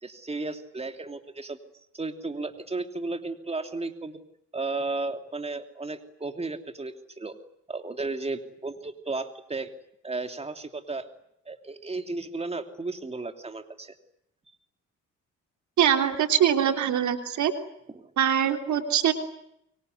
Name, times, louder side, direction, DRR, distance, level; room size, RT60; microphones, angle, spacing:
voice 1, 0.0-1.6 1.9-4.2 4.5-7.3 7.7-9.7 10.0-11.1 11.5-14.0 17.9-18.1, right 3 dB, 20° right, 7 dB, 3.0 m, -34 dB
voice 2, 15.8-17.5 18.2-19.1, right 9 dB, 70° right, 6 dB, 3.3 m, -23 dB
25.5 x 24.0 x 9.4 m, 0.78 s
cardioid pair, 90°, 30 cm